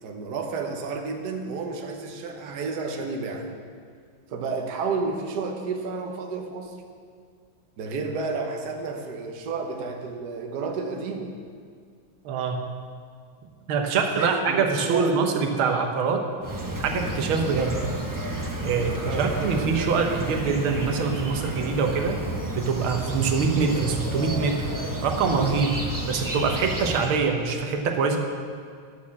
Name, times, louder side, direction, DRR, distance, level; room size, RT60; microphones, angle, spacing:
voice 1, 0.0-3.5 4.3-6.8 7.8-11.3 14.1-15.2 19.1-19.3, right 4 dB, 60° right, 3 dB, 1.4 m, -31 dB
voice 2, 12.3-12.6 13.7-16.2 16.8-17.8 18.6-22.2 22.5-24.7 25.0-25.8 26.1-28.2, right 5 dB, 90° right, 3 dB, 1.8 m, -24 dB
sound 1, 16.4-27.2, right 1 dB, 20° right, 0.5 m, -31 dB
11.5 x 6.4 x 7.2 m, 2.1 s
omnidirectional pair, 2.2 m